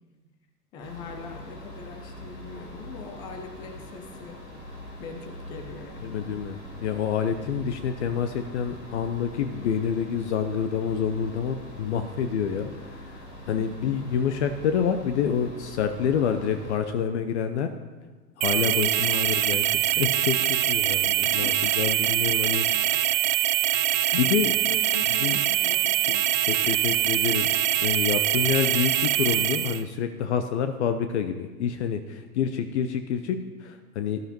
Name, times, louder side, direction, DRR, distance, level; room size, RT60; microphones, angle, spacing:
voice 1, 0.7-4.4 5.0-6.3 13.5-13.9 18.8-19.2 21.2-21.6 24.7-26.5, left 4 dB, 10° left, 6 dB, 0.4 m, -42 dB
sound 1, 0.8-16.8, left 1 dB, 80° left, 2.9 m, -43 dB
voice 2, 6.0-13.2 13.5-17.7 18.4-20.4 20.7-23.1 24.1-24.5 25.2-25.4 26.4-27.5 27.8-34.2, left 7 dB, 45° left, 8 dB, 0.7 m, -27 dB
sound 2, 18.4-29.8, right 12 dB, 55° right, 0.6 m, -24 dB
19.0 x 12.0 x 3.0 m, 1.3 s
figure-of-eight pair, 100°, 47 cm